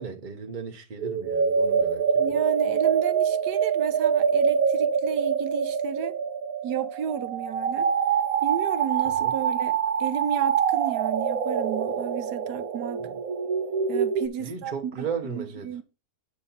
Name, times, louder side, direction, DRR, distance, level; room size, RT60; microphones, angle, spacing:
voice 1, 0.0-2.4 9.2-9.3 13.0-13.2 14.4-15.8, right 6 dB, 35° right, 0.9 m, -36 dB
sound 1, 1.0-14.3, right 7 dB, 70° right, 1.2 m, -25 dB
voice 2, 2.2-6.2 6.6-7.9 8.4-13.1 13.9-15.8, right 8 dB, 85° right, 1.4 m, -33 dB
8.3 x 4.3 x 5.5 m
omnidirectional pair, 1.7 m